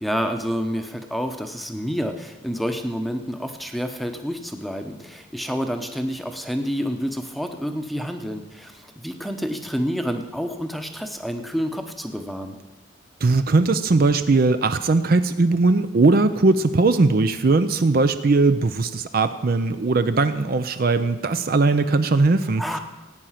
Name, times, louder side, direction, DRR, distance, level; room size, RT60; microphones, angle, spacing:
voice 1, 0.0-12.6 22.6-22.8, equal, ahead, 5 dB, 0.8 m, -28 dB
voice 2, 13.2-22.6, right 3 dB, 45° right, 10 dB, 0.5 m, -19 dB
17.5 x 9.1 x 5.8 m, 1.1 s
head